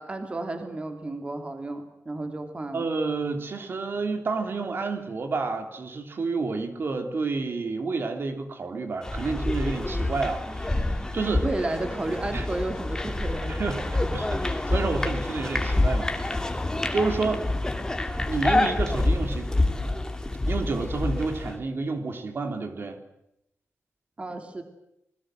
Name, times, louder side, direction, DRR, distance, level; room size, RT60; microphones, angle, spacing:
voice 1, 0.0-2.8 11.2-14.1 24.2-24.6, right 2 dB, 25° right, 6 dB, 2.9 m, -32 dB
voice 2, 2.7-10.9 11.1-11.4 12.3-12.5 13.5-16.4 16.9-17.5 18.3-19.5 20.5-23.0, right 4 dB, 50° right, 6 dB, 3.2 m, -29 dB
sound 1, 9.0-21.6, left 2 dB, 15° left, 2.5 m, -27 dB
27.5 x 21.5 x 7.7 m, 0.81 s
wide cardioid pair, 160°, 5 cm